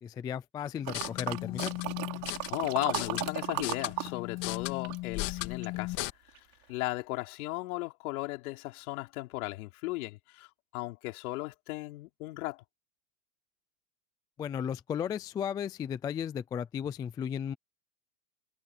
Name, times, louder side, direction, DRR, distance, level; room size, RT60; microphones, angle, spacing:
voice 1, 0.0-1.7 14.4-17.5, left 8 dB, 10° left, 0.3 m, -35 dB
sound 1, 0.8-6.1, left 21 dB, 45° left, 2.3 m, -36 dB
sound 2, 0.8-4.1 4.4-5.8 6.3-6.4, right 25 dB, 50° right, 5.9 m, -36 dB
voice 2, 2.5-6.0 6.3-6.4 6.7-10.5 10.7-12.6, left 21 dB, 65° left, 5.2 m, -36 dB
supercardioid pair, 135°, 46 cm